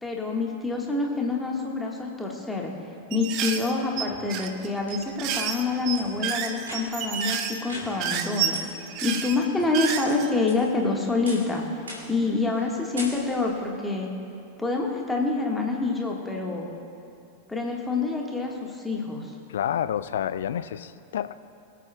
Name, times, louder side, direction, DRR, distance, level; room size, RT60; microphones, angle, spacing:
voice 1, 0.0-2.7 3.1-8.6 9.0-11.8 12.1-14.1 14.6-16.7 17.5-19.3, left 3 dB, 5° left, -1 dB, 1.6 m, -27 dB
sound 1, 3.1-10.3, right 8 dB, 40° right, 0.7 m, -30 dB
sound 2, 4.8-5.4 5.9-6.0 6.6-7.1 7.7-8.2 8.5-8.6 9.0-9.1 9.6-10.1 10.5-10.9 11.3-11.5 11.9-12.2 12.5-12.7 13.0-13.5, equal, 70° right, 2.8 m, -40 dB
voice 2, 19.5-21.3, left 10 dB, 60° left, 14 dB, 0.4 m, -29 dB
23.0 x 8.4 x 2.3 m, 2.6 s
figure-of-eight pair, 90°, 0 cm